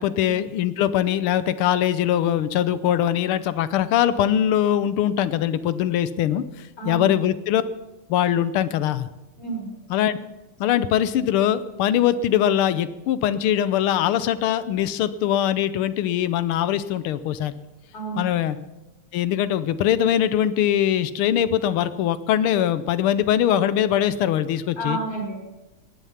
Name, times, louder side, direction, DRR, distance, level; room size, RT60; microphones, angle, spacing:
voice 1, 0.0-6.4 6.8-7.6 8.1-9.1 9.9-10.2 10.6-17.5 18.2-18.6 19.1-25.0, left 10 dB, 85° left, 14 dB, 1.6 m, -22 dB
voice 2, 6.8-7.1 9.4-9.7 17.9-18.3 24.8-25.4, right 2 dB, 55° left, -2 dB, 5.4 m, -30 dB
17.5 x 11.0 x 5.8 m, 1.0 s
omnidirectional pair, 2.3 m